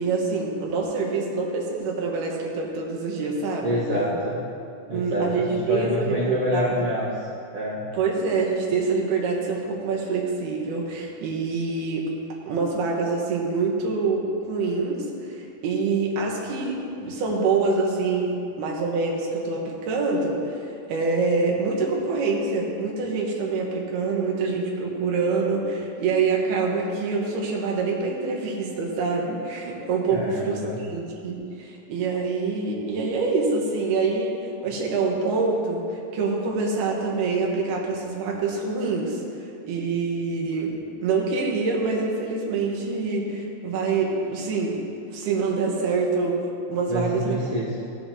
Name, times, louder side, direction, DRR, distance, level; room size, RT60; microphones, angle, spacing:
voice 1, 0.0-4.1 4.9-6.8 7.9-12.1 12.5-39.2 39.6-44.8 45.1-46.4 46.7-47.4, right 4 dB, 85° right, -2 dB, 3.2 m, -26 dB
voice 2, 3.6-4.4 4.9-7.3 7.5-7.8 30.1-30.7 46.9-47.8, equal, 50° right, -10 dB, 1.9 m, -27 dB
15.5 x 7.5 x 3.0 m, 2.6 s
omnidirectional pair, 4.4 m